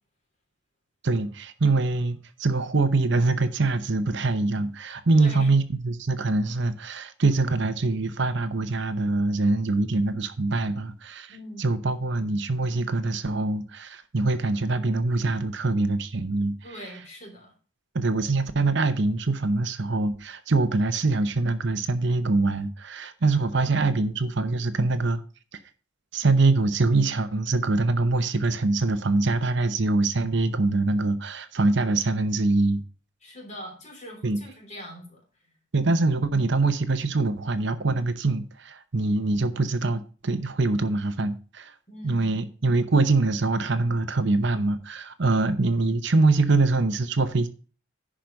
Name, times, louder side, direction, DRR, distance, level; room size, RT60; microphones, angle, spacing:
voice 1, 1.0-16.5 17.9-25.2 26.1-32.8 34.2-34.4 35.7-41.7 42.0-47.5, right 3 dB, 55° right, 0.8 m, -24 dB
voice 2, 5.1-5.5 11.3-11.7 16.6-17.5 23.5-23.8 33.2-35.2 41.9-42.3, equal, 35° left, 3.3 m, -42 dB
10.5 x 5.0 x 5.2 m
head